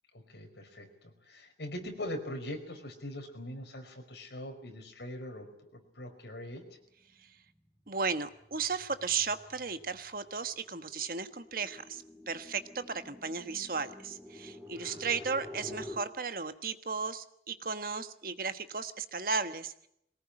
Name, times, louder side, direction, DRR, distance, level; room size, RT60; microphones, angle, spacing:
voice 1, 0.1-6.6 14.7-15.2, left 1 dB, 70° left, 4 dB, 5.1 m, -42 dB
sound 1, 7.0-15.9, left 1 dB, 5° right, 6.9 m, -49 dB
voice 2, 7.9-19.9, right 5 dB, 50° right, 10 dB, 1.3 m, -35 dB
22.5 x 19.0 x 9.9 m, 0.75 s
head